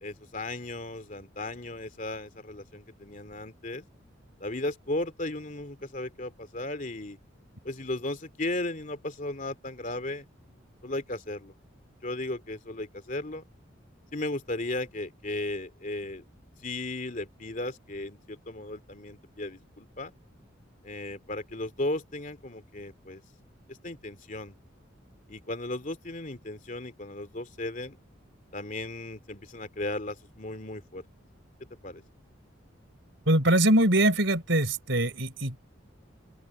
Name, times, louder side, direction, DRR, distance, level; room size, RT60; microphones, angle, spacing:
voice 1, 0.0-3.9 4.4-7.2 7.6-10.2 10.8-11.5 12.0-13.4 14.1-16.2 16.6-20.1 20.8-23.2 23.7-24.6 25.3-28.0 28.5-31.0 31.8-32.0, left 2 dB, 40° left, 2.7 m, -35 dB
voice 2, 33.3-35.6, right 1 dB, 65° right, 4.4 m, -23 dB
open air
head